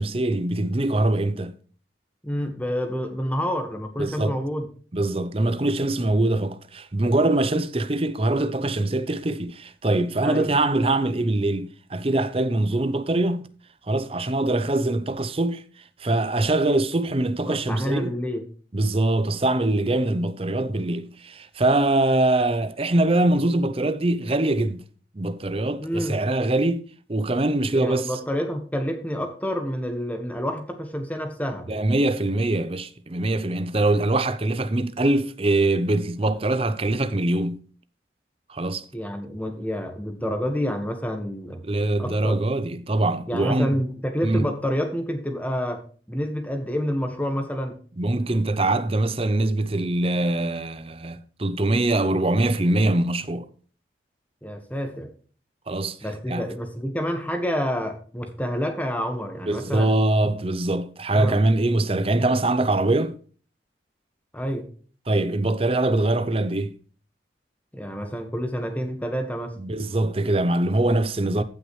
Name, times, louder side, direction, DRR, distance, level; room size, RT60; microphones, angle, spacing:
voice 1, 0.0-1.5 4.0-4.4 4.9-13.5 13.9-15.6 16.0-18.1 18.7-24.8 25.1-28.1 31.7-37.6 38.5-38.8 41.6-43.8 44.2-44.5 48.0-53.5 55.7-56.0 56.3-56.5 59.4-63.2 65.1-66.7 69.6-71.4, right 2 dB, 30° right, 0.7 m, -23 dB
voice 2, 2.2-4.7 10.2-10.5 17.5-18.4 25.8-26.2 27.7-31.7 38.9-41.6 42.0-42.4 43.3-45.8 46.1-47.8 54.4-55.1 56.0-59.9 61.1-61.4 64.3-64.6 67.7-69.5, equal, 10° left, 1.5 m, -28 dB
15.0 x 6.1 x 3.2 m
head